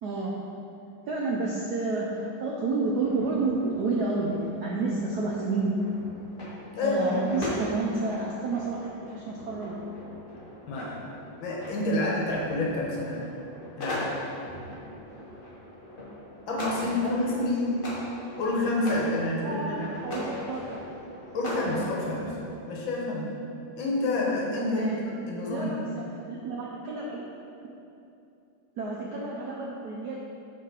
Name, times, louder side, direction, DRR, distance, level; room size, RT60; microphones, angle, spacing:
voice 1, 0.0-0.4 1.1-5.8 6.8-9.8 16.8-17.5 19.4-20.8 24.6-25.0 25.5-27.3 28.7-30.2, right 3 dB, 75° right, -3 dB, 0.9 m, -30 dB
sound 1, 2.9-22.6, left 1 dB, 35° left, 0.9 m, -40 dB
voice 2, 6.7-7.2 10.7-11.0 11.4-13.2 13.8-14.2 16.5-17.7 18.4-19.9 21.3-22.4 22.7-23.4 23.8-25.9, left 2 dB, 65° left, -3 dB, 1.7 m, -28 dB
7.4 x 3.9 x 4.5 m, 2.7 s
omnidirectional pair, 2.4 m